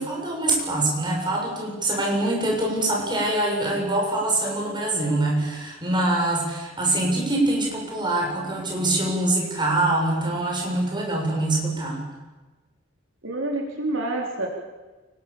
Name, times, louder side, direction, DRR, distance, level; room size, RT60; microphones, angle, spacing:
voice 1, 0.0-12.0, right 2 dB, 25° right, -1 dB, 7.7 m, -24 dB
voice 2, 13.2-14.5, right 2 dB, 75° right, 0 dB, 4.0 m, -27 dB
29.0 x 19.5 x 7.3 m, 1.2 s
head